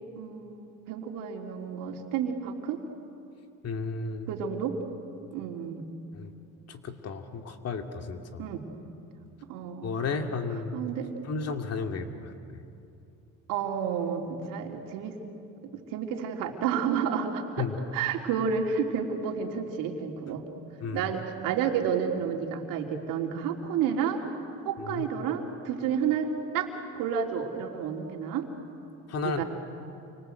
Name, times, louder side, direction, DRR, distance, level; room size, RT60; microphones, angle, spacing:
voice 1, 0.2-2.8 4.3-4.8 5.3-5.8 8.4-8.6 9.5-9.9 10.7-11.1 13.5-15.2 15.9-17.7 17.9-20.4 20.9-24.2 24.6-26.7 26.9-28.5 29.2-29.4, right 7 dB, 70° right, 2 dB, 3.4 m, -30 dB
voice 2, 3.6-4.3 6.1-6.3 6.7-8.4 9.8-10.7 11.3-12.3 17.6-17.7 20.8-21.1 24.9-25.1 29.1-29.4, left 4 dB, 45° left, 5 dB, 2.6 m, -33 dB
29.0 x 25.0 x 8.1 m, 2.7 s
supercardioid pair, 95°, 34 cm